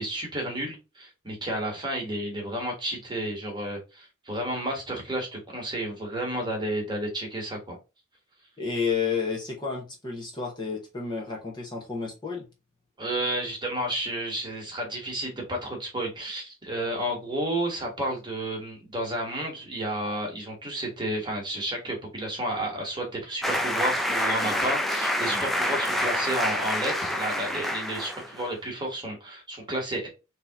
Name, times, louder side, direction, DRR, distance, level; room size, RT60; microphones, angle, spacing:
voice 1, 0.0-7.8 13.0-30.1, right 1 dB, 20° right, 1.4 m, -31 dB
voice 2, 8.6-12.5, left 5 dB, 20° left, 0.9 m, -31 dB
sound 1, 23.4-28.5, equal, ahead, 0.5 m, -27 dB
3.6 x 2.8 x 3.5 m
head